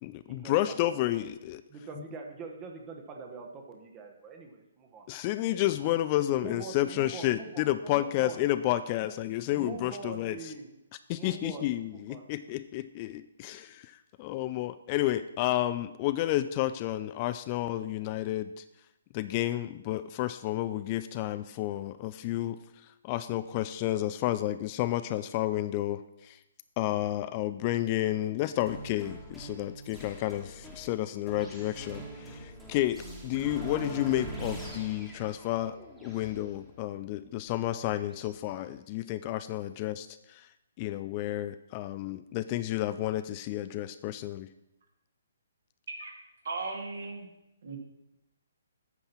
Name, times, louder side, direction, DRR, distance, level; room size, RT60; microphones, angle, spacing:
voice 1, 0.0-1.6 2.0-2.1 5.1-10.5 11.1-18.6 19.1-26.4 26.8-40.5 40.8-44.5, left 14 dB, 30° left, 13 dB, 0.3 m, -31 dB
voice 2, 1.7-5.1 5.6-5.9 6.4-8.4 9.0-9.1 9.5-10.7 11.2-11.7 12.1-12.3, right 4 dB, 20° right, 2 dB, 1.1 m, -44 dB
sound 1, 28.7-38.4, right 2 dB, ahead, 1.5 m, -44 dB
voice 3, 46.4-47.3 47.6-47.8, right 3 dB, 55° right, 1 dB, 2.0 m, -36 dB
8.9 x 5.5 x 5.9 m, 0.89 s
figure-of-eight pair, 130°, 0 cm